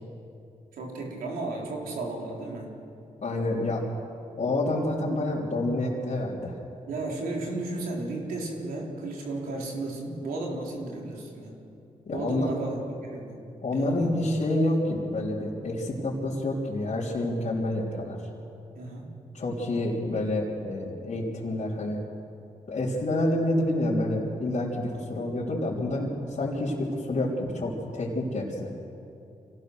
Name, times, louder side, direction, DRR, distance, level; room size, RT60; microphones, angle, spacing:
voice 1, 0.7-2.7 6.9-11.5 12.1-13.4 13.7-14.0 18.7-19.1, right 2 dB, 90° right, -2 dB, 3.9 m, -34 dB
voice 2, 3.2-3.8 4.4-6.5 12.1-12.5 13.6-18.2 19.3-22.0 22.7-28.7, left 1 dB, 55° left, -7 dB, 3.6 m, -28 dB
25.5 x 17.5 x 6.5 m, 2.7 s
supercardioid pair, 50°, 14 cm